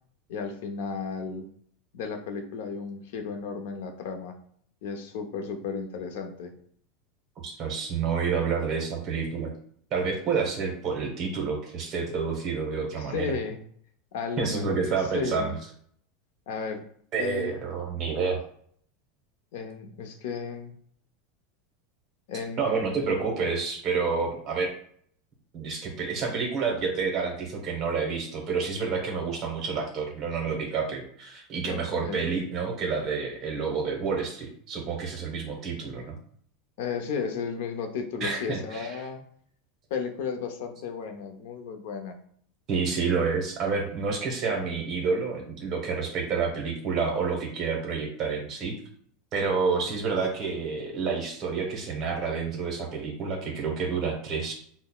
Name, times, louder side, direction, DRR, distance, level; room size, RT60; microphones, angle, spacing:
voice 1, 0.3-1.5 1.9-4.3 4.8-6.5 12.9-13.6 14.1-15.5 16.5-16.8 17.2-17.5 19.5-20.8 22.3-23.0 31.7-32.2 36.8-39.2 39.9-42.2 49.8-49.9, left 5 dB, 65° left, 6 dB, 0.5 m, -34 dB
voice 2, 7.4-9.5 9.9-13.3 14.4-15.5 17.1-18.4 22.6-24.7 25.5-36.2 38.2-38.9 42.7-48.8 49.3-54.5, right 5 dB, 30° right, 1 dB, 0.9 m, -29 dB
5.6 x 2.0 x 2.3 m, 0.62 s
supercardioid pair, 170°, 0 cm